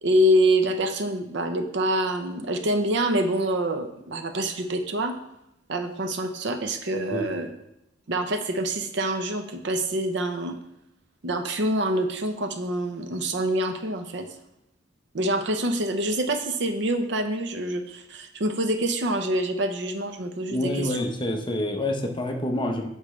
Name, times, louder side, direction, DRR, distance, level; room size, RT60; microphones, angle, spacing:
voice 1, 0.0-5.2 5.7-7.5 8.1-10.6 11.2-14.3 15.1-21.0, right 1 dB, 65° right, 7 dB, 0.7 m, -26 dB
voice 2, 20.5-22.9, left 1 dB, 25° left, 3 dB, 0.8 m, -27 dB
8.4 x 5.6 x 3.2 m, 0.85 s
head